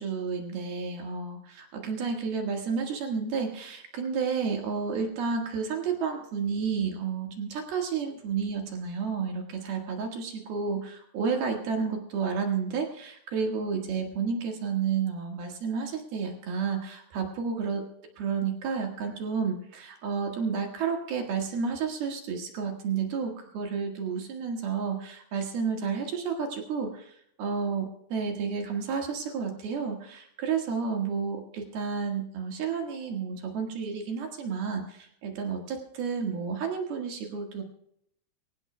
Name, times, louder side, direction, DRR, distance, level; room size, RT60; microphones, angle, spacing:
voice 1, 0.0-17.9 18.2-27.1 27.4-37.6, right 6 dB, 60° right, 2 dB, 3.3 m, -31 dB
24.5 x 16.0 x 2.3 m, 0.72 s
omnidirectional pair, 5.4 m